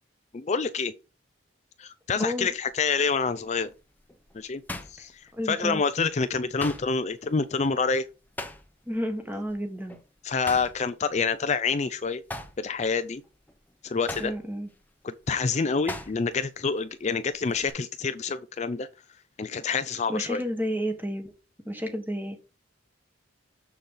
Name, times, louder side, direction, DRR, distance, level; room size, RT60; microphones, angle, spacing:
voice 1, 0.3-0.9 1.8-3.7 4.3-4.6 4.9-8.0 10.2-12.2 12.6-13.2 13.8-14.3 15.0-18.9 19.4-20.4, left 4 dB, 35° left, 0.4 m, -27 dB
sound 1, 2.4-2.8 3.3-5.8 6.1-9.0 9.3-9.5 9.9-11.8 12.1-16.5 16.8-17.7, left 2 dB, 10° left, 0.9 m, -41 dB
voice 2, 5.3-5.8 8.9-10.0 14.2-14.7 15.9-16.0 20.1-21.3 21.6-22.4, equal, 10° right, 1.5 m, -31 dB
7.0 x 6.4 x 3.8 m
head